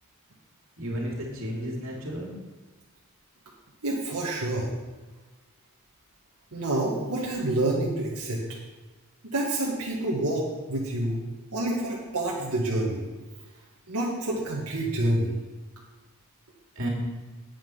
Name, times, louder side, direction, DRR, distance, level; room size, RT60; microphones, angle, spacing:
voice 1, 0.8-2.3 16.8-16.9, equal, 65° right, -2 dB, 2.8 m, -32 dB
voice 2, 3.8-4.7 6.5-8.4 9.2-10.4 10.7-11.2 11.5-13.0 13.9-15.3, right 1 dB, 90° right, -4 dB, 1.9 m, -27 dB
9.4 x 8.9 x 5.6 m, 1.2 s
head